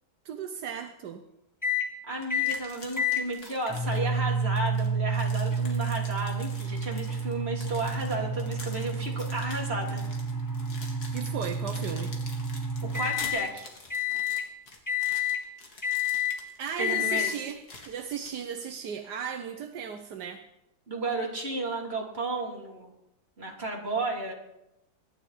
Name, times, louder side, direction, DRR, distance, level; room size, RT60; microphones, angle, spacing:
voice 1, 0.2-1.2 11.1-12.1 16.6-20.4, right 7 dB, 80° right, 6 dB, 1.5 m, -36 dB
sound 1, 1.6-1.9 2.3-2.6 3.0-13.5 13.9-14.5 14.9-15.4 15.8-16.4 16.8-17.3, left 1 dB, 10° left, 1.3 m, -30 dB
voice 2, 2.0-10.0 12.8-13.7 16.8-17.3 20.9-22.9 23.4-24.3, right 2 dB, 35° right, -1 dB, 3.8 m, -33 dB
sound 2, 2.2-4.2 4.6-18.8, left 3 dB, 70° left, 2.9 m, -47 dB
23.5 x 11.0 x 5.0 m, 0.86 s
omnidirectional pair, 1.8 m